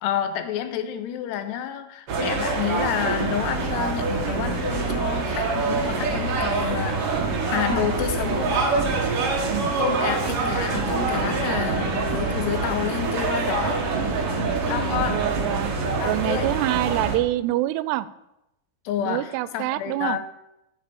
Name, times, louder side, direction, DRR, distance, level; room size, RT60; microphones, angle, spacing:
voice 1, 0.0-7.2 7.4-8.7 9.8-13.8 14.7-15.3 16.0-16.5 18.9-20.3, left 10 dB, 90° left, 8 dB, 3.1 m, -29 dB
sound 1, 2.1-17.2, right 3 dB, 50° right, 1.8 m, -25 dB
voice 2, 15.1-15.7 16.0-18.1 19.0-20.2, right 16 dB, 90° right, 16 dB, 2.6 m, -26 dB
9.2 x 7.9 x 7.0 m, 0.89 s
omnidirectional pair, 4.7 m